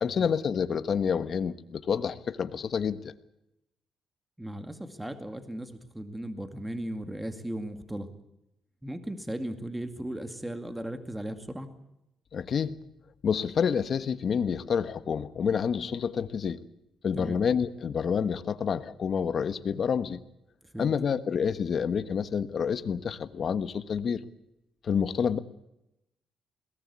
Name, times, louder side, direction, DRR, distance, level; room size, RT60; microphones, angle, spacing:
voice 1, 0.0-3.1 12.3-12.8 13.2-16.6 17.0-20.2 20.8-24.2 24.8-25.4, left 7 dB, 55° left, 12 dB, 1.3 m, -28 dB
voice 2, 4.4-8.1 8.8-11.7 17.1-17.4 20.6-20.9, right 1 dB, 10° right, 8 dB, 2.2 m, -37 dB
22.0 x 19.0 x 8.5 m, 0.86 s
cardioid pair, 90°, 0 cm